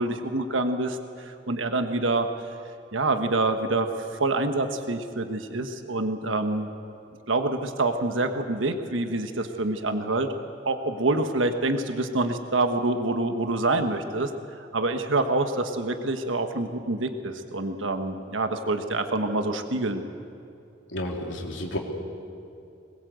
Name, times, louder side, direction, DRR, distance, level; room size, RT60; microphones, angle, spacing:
voice 1, 0.0-2.3 2.9-6.7 7.3-10.3 10.6-14.3 14.7-20.0, right 2 dB, 85° right, 7 dB, 1.4 m, -26 dB
voice 2, 20.9-21.8, left 1 dB, 75° left, 1 dB, 3.2 m, -31 dB
21.5 x 20.5 x 8.1 m, 2.7 s
head